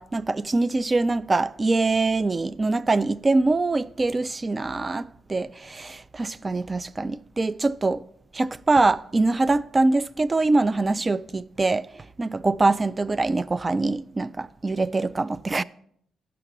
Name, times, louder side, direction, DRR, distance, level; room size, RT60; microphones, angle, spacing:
voice 1, 0.0-8.0 8.3-11.9 12.2-15.6, right 3 dB, 25° right, 0.4 m, -23 dB
11.0 x 5.8 x 6.0 m
cardioid pair, 90°, 0 cm